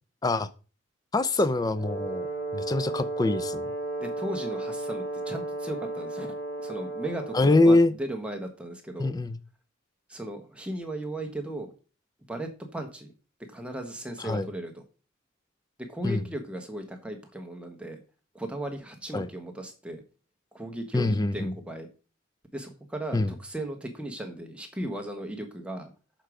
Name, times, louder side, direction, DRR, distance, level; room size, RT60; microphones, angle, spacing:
voice 1, 1.1-2.3 2.5-3.7 7.3-7.9 9.0-9.4 14.2-14.5 16.0-16.2 19.1-19.3 20.9-21.6 23.1-23.3, left 2 dB, 20° left, 14 dB, 0.4 m, -24 dB
Brass instrument, 1.7-7.7, right 2 dB, 65° left, 3.2 m, -34 dB
voice 2, 4.0-6.3 6.6-9.2 10.1-11.7 12.3-13.1 13.5-14.8 15.8-18.0 18.3-20.0 20.5-21.9 22.5-25.9, right 1 dB, 5° right, 4 dB, 1.2 m, -36 dB
6.8 x 4.6 x 4.9 m, 0.35 s
head